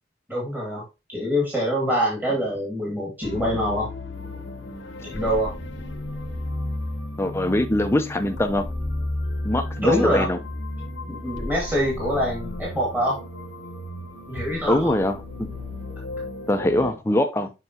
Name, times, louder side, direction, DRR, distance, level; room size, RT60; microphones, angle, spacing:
voice 1, 0.3-0.8 1.1-3.9 5.0-5.5 9.8-10.3 11.1-13.2 14.3-14.9, equal, 10° right, 2.1 m, -24 dB
sound 1, 3.2-16.9, left 2 dB, 75° left, 0.9 m, -33 dB
sound 2, 4.1-16.6, right 4 dB, 80° right, 3.7 m, -48 dB
voice 2, 7.2-8.6 9.4-10.4 14.7-15.5 16.5-17.5, left 1 dB, 15° left, 0.6 m, -23 dB
6.9 x 5.4 x 2.8 m
head